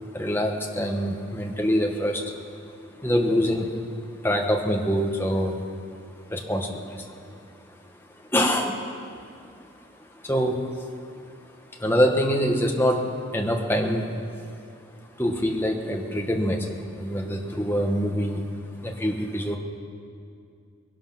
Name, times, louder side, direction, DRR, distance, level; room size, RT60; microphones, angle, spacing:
voice 1, 0.1-2.2 3.0-3.7 4.2-5.7 6.3-7.3 8.3-8.8 10.2-10.9 11.8-14.2 15.2-18.4 18.8-19.6, equal, 10° left, 2 dB, 1.2 m, -25 dB
21.0 x 11.5 x 6.0 m, 2.4 s
head